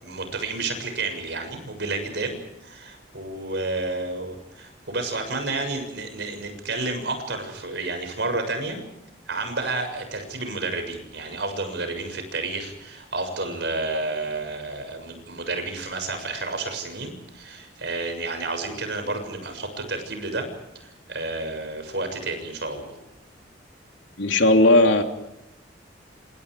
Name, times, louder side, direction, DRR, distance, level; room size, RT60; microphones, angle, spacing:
voice 1, 0.0-8.8 9.3-20.5 20.8-23.0, right 3 dB, 60° right, 6 dB, 6.9 m, -30 dB
voice 2, 24.2-25.0, left 2 dB, 75° left, 4 dB, 3.3 m, -16 dB
28.0 x 27.5 x 5.0 m, 0.86 s
head